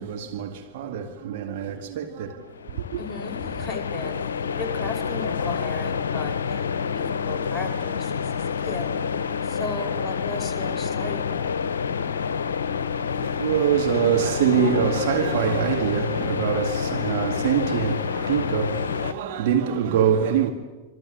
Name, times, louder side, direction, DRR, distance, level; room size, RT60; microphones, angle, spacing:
voice 1, 0.0-3.0 12.9-20.5, right 8 dB, 50° right, 2.1 m, -25 dB
sound 1, 2.5-19.1, left 6 dB, 65° left, 0.8 m, -28 dB
voice 2, 3.0-8.9 9.4-11.6, left 3 dB, 5° left, 5.3 m, -36 dB
26.5 x 26.0 x 7.4 m
figure-of-eight pair, 90°, 0 cm